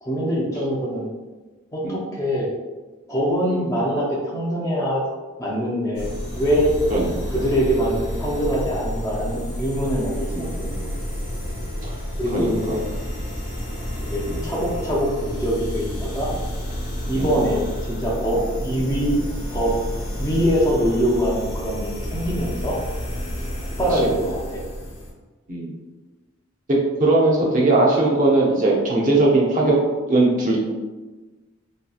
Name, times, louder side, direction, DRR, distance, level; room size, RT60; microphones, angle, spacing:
voice 1, 0.0-1.1 1.7-2.5 3.1-5.0 5.4-6.7 7.3-10.9 12.2-12.8 14.0-16.3 17.1-19.2 19.5-19.7 20.2-22.8 23.8-24.6, equal, 15° left, -5 dB, 0.4 m, -23 dB
sound 1, 5.9-25.1, equal, 60° left, 0.9 m, -30 dB
voice 2, 12.3-12.8 14.3-14.4 17.2-17.4 23.9-24.0 25.5-25.7 26.7-29.8 30.1-30.6, right 2 dB, 35° right, -3 dB, 0.5 m, -19 dB
2.7 x 2.7 x 2.3 m, 1.2 s
head